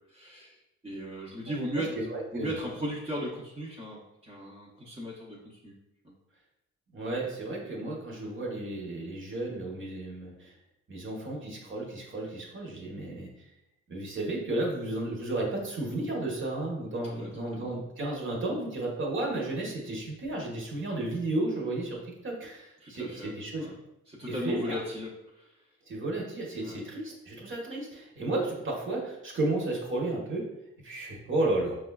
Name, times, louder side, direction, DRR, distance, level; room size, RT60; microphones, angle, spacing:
voice 1, 0.1-0.6 0.8-2.0 2.3-5.7 17.0-17.8 22.8-23.3 23.6-23.8 24.1-25.6 26.6-26.8, equal, 20° right, -4 dB, 0.7 m, -37 dB
voice 2, 1.8-2.5 6.9-10.6 10.9-13.3 13.9-23.7 24.3-24.8 25.9-30.5 30.8-31.8, right 2 dB, 40° right, -1 dB, 1.0 m, -33 dB
4.8 x 2.3 x 2.3 m, 0.87 s
cardioid pair, 90°, 30 cm